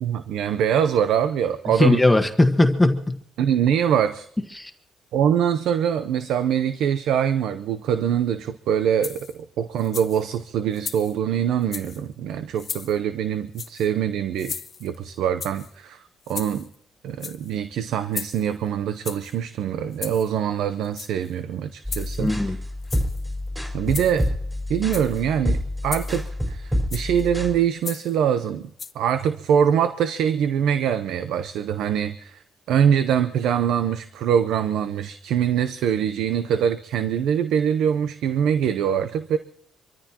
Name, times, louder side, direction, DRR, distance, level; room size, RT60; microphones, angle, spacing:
voice 1, 0.0-2.0 3.4-4.3 5.1-14.5 14.8-16.7 17.0-22.3 23.7-24.3 24.7-25.6 25.8-32.4 32.7-39.4, right 8 dB, 85° right, 11 dB, 0.7 m, -23 dB
voice 2, 1.8-3.2 4.5-4.7 22.2-22.6, left 2 dB, 10° left, 4 dB, 1.4 m, -18 dB
sound 1, 9.0-9.4 9.8-10.2 10.7-11.2 11.6-12.0 12.6-13.0 13.5-13.9 14.4-15.0 15.4-15.7 16.2-16.8 17.1-17.5 18.1-18.5 19.0-19.3 19.9-20.3 20.8-21.3 21.9-22.4 22.8-23.2 23.9-24.3 24.8-25.2 25.9-26.3 26.9-27.2 27.8-28.2 28.8-28.9, left 6 dB, 45° left, 1.2 m, -36 dB
sound 2, 21.8-27.5, left 1 dB, 10° right, 4.4 m, -28 dB
26.0 x 14.0 x 2.9 m, 0.64 s
cardioid pair, 90°, 0 cm